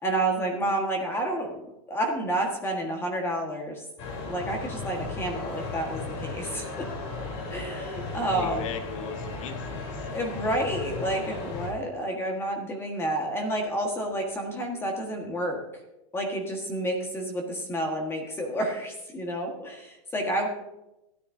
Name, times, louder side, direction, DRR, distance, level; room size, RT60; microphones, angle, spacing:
voice 1, 0.0-1.6 1.9-3.8 4.3-6.9 7.5-8.7 10.1-15.6 16.1-20.5, right 1 dB, 15° left, 2 dB, 1.6 m, -30 dB
sound 1, 4.0-11.7, left 3 dB, 50° left, 3.6 m, -36 dB
voice 2, 8.3-10.1, left 7 dB, 70° left, 7 dB, 1.4 m, -38 dB
16.0 x 10.0 x 2.7 m, 0.93 s
supercardioid pair, 140°, 17 cm